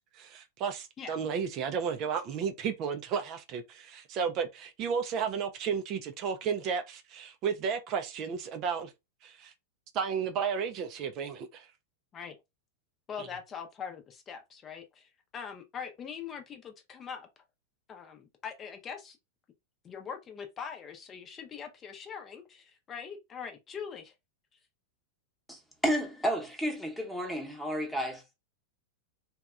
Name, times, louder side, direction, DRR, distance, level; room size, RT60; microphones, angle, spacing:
voice 1, 0.1-8.9 9.2-9.5 9.9-11.7 13.2-13.3, right 6 dB, 45° right, 0.4 m, -33 dB
voice 2, 13.1-17.3 17.9-19.2 19.8-24.1, left 7 dB, 30° left, 0.6 m, -42 dB
voice 3, 25.5-28.4, equal, ahead, 0.9 m, -32 dB
2.7 x 2.2 x 2.4 m
hypercardioid pair, 100°, 0 cm